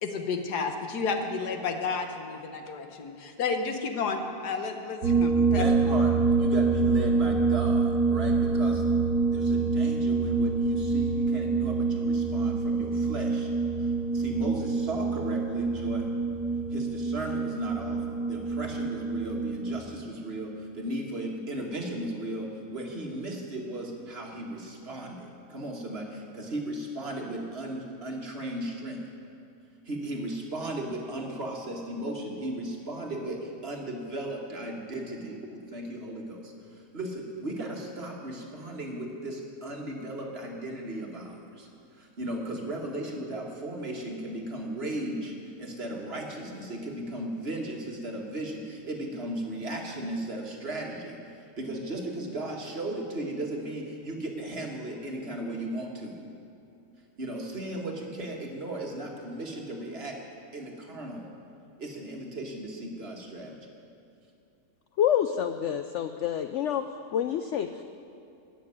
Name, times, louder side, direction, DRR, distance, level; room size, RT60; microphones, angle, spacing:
voice 1, 0.0-5.9, left 4 dB, 90° left, 5 dB, 1.7 m, -31 dB
sound 1, 5.0-19.8, right 4 dB, 75° right, 1.4 m, -26 dB
voice 2, 5.5-8.8 9.3-13.5 13.8-16.1 16.7-29.0 29.9-51.2 51.6-56.2 57.2-60.2 60.5-61.3 61.8-63.7, right 1 dB, 40° right, 0 dB, 1.8 m, -36 dB
voice 3, 65.0-66.8 67.1-67.8, left 9 dB, 70° left, 9 dB, 0.7 m, -27 dB
14.5 x 6.6 x 9.7 m, 2.7 s
omnidirectional pair, 1.7 m